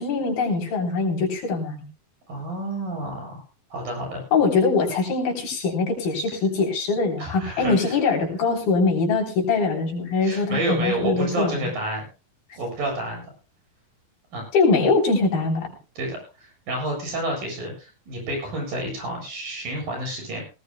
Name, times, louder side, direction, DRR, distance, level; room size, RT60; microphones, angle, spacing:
voice 1, 0.0-1.8 4.3-11.7 14.5-15.7, left 4 dB, 75° left, 0 dB, 5.4 m, -22 dB
voice 2, 2.3-3.4 3.7-4.2 7.2-8.0 10.2-12.0 12.6-13.2 14.3-14.4 16.0-20.4, right 1 dB, 65° right, 1 dB, 9.3 m, -29 dB
19.0 x 18.5 x 2.2 m, 0.31 s
omnidirectional pair, 4.2 m